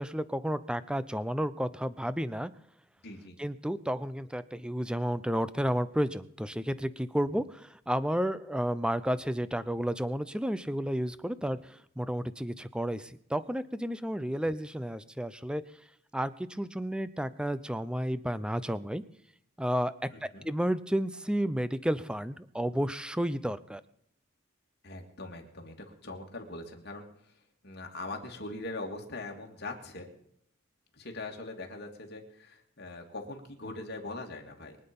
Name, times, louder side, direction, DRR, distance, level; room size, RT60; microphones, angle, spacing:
voice 1, 0.0-2.5 3.4-15.6 16.1-19.0 19.6-19.9 20.2-23.8, equal, 5° right, 15 dB, 0.6 m, -32 dB
voice 2, 3.0-3.4 20.1-20.5 24.8-27.3 27.6-30.1 30.9-34.8, left 2 dB, 50° left, 2 dB, 2.6 m, -42 dB
23.5 x 8.8 x 5.4 m, 0.70 s
head